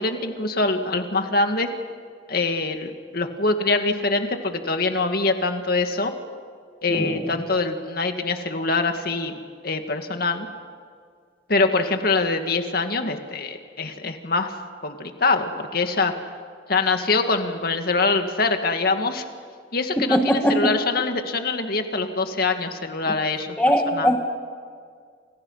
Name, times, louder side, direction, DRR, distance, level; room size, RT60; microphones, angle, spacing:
voice 1, 0.0-1.7 2.3-6.1 6.8-10.5 11.5-14.5 14.8-16.1 16.7-19.2 19.7-23.6 23.9-24.2, left 3 dB, 55° left, 6 dB, 2.2 m, -24 dB
voice 2, 20.0-20.6 23.6-24.2, equal, 10° left, 2 dB, 2.0 m, -20 dB
29.0 x 28.0 x 5.8 m, 2.1 s
head